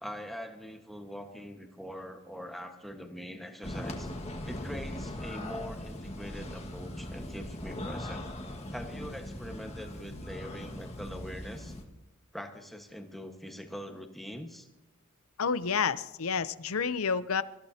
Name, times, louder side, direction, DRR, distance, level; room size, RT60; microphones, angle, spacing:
voice 1, 0.0-4.1 4.4-8.2 8.7-11.7 12.3-14.7, equal, ahead, 3 dB, 1.4 m, -43 dB
sound 1, 3.6-11.8, left 1 dB, 30° left, 1.8 m, -40 dB
voice 2, 15.4-17.4, left 6 dB, 75° left, 14 dB, 0.7 m, -29 dB
26.0 x 15.0 x 2.8 m, 1.0 s
head